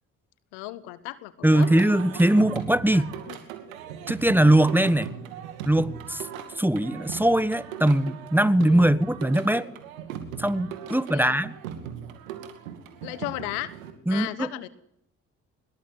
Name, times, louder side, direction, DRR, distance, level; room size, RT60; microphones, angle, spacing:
voice 1, 0.5-1.7 2.9-3.4 4.3-4.6 8.7-8.9 10.9-11.3 13.0-13.7 14.1-14.7, left 18 dB, 70° left, 17 dB, 1.3 m, -36 dB
voice 2, 1.4-3.1 4.1-5.1 5.6-6.3 6.5-9.7 10.4-11.5 14.1-14.5, right 1 dB, 5° right, 17 dB, 1.4 m, -21 dB
Singing, 1.5-13.9, right 9 dB, 80° right, 2.5 m, -38 dB
24.0 x 21.0 x 9.5 m, 0.76 s
figure-of-eight pair, 40°, 41 cm